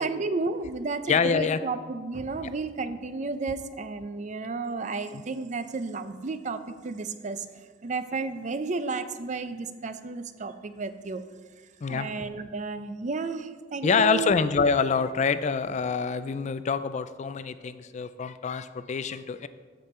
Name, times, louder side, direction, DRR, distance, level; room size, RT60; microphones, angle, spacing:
voice 1, 0.0-7.4 7.8-11.2 11.9-14.4, right 3 dB, 40° right, 11 dB, 0.5 m, -32 dB
voice 2, 1.1-1.6 5.1-5.2 11.8-12.1 13.8-19.5, left 5 dB, 40° left, 13 dB, 0.3 m, -26 dB
13.5 x 5.2 x 4.3 m, 1.5 s
head